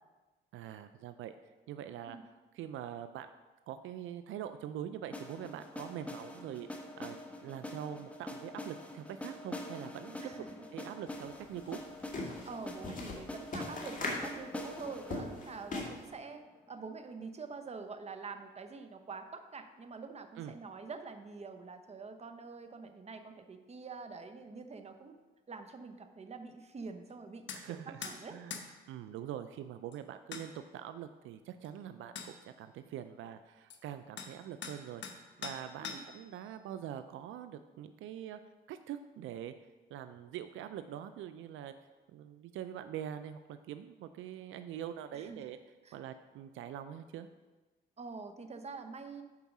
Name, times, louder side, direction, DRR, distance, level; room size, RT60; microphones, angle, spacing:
voice 1, 0.5-1.3 1.7-2.2 2.5-3.3 3.7-10.2 10.7-11.8 20.4-20.6 27.5-28.0 28.3-38.4 38.7-39.5 39.9-41.7 42.1-45.6 45.9-47.3, right 10 dB, 80° right, 10 dB, 0.4 m, -44 dB
sound 1, 5.1-17.0, left 1 dB, 5° left, 1.1 m, -45 dB
voice 2, 10.2-10.5 12.5-25.2 25.5-28.4 35.8-36.0 45.1-45.5 45.8-46.0 48.0-49.2, right 4 dB, 35° right, 7 dB, 0.9 m, -46 dB
sound 2, 11.1-11.2 11.5-16.1, left 2 dB, 40° left, 2.1 m, -40 dB
sound 3, 27.5-27.6 28.0-28.2 28.5-28.7 29.9-30.0 30.3-30.5 31.6-31.7 32.2-32.3 33.7-33.8 34.2-34.3 34.6-35.2 35.4-36.2, left 6 dB, 65° left, 1.1 m, -42 dB
9.5 x 4.6 x 6.0 m, 1.2 s
cardioid pair, 90°, 20 cm